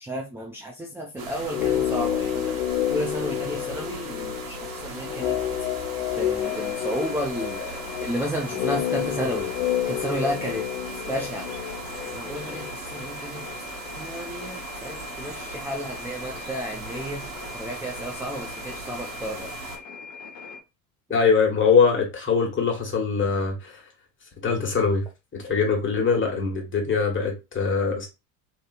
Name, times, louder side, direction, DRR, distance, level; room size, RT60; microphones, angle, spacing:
voice 1, 0.0-2.6 2.9-5.4 6.2-9.5 9.9-10.7 11.1-11.5 12.1-13.4 14.0-17.3 17.5-19.5, equal, 5° right, 0.4 m, -32 dB
sound 1, 1.2-19.8, right 4 dB, 45° right, 1.2 m, -39 dB
sound 2, 1.5-13.6 13.8-13.9, left 11 dB, 70° left, 0.5 m, -29 dB
sound 3, 6.4-20.6, left 5 dB, 50° left, 1.0 m, -41 dB
voice 2, 21.1-23.8 24.4-25.0 25.4-28.1, left 5 dB, 25° left, 1.3 m, -22 dB
2.7 x 2.6 x 2.4 m
hypercardioid pair, 75°, 45 cm